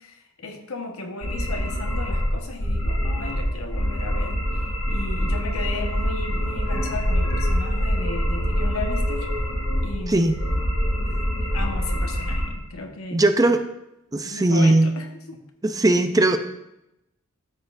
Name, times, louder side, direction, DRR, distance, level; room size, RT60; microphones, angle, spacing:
voice 1, 0.0-9.3 9.8-10.3 11.1-11.2 11.5-13.4 14.2-15.4, left 3 dB, 75° left, 3 dB, 1.3 m, -35 dB
sound 1, 1.2-12.5, equal, 90° left, 1.5 m, -25 dB
sound 2, 3.7-12.6, right 1 dB, 40° right, 1.4 m, -42 dB
voice 2, 10.1-10.4 13.1-13.6 14.1-14.9 15.6-16.4, right 2 dB, 15° right, 8 dB, 0.5 m, -19 dB
13.0 x 7.7 x 2.6 m, 0.85 s
head